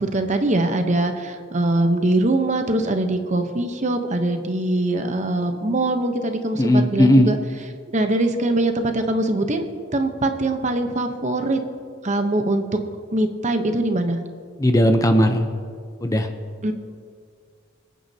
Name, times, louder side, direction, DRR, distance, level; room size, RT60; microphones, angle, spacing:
voice 1, 0.0-7.4 7.9-9.6 9.9-11.6 12.0-12.6 13.1-14.2 16.6-16.7, right 2 dB, 35° right, 6 dB, 0.9 m, -22 dB
voice 2, 6.6-7.3 14.6-15.5 16.0-16.3, equal, 15° left, 6 dB, 0.6 m, -17 dB
25.5 x 9.1 x 2.8 m, 2.1 s
head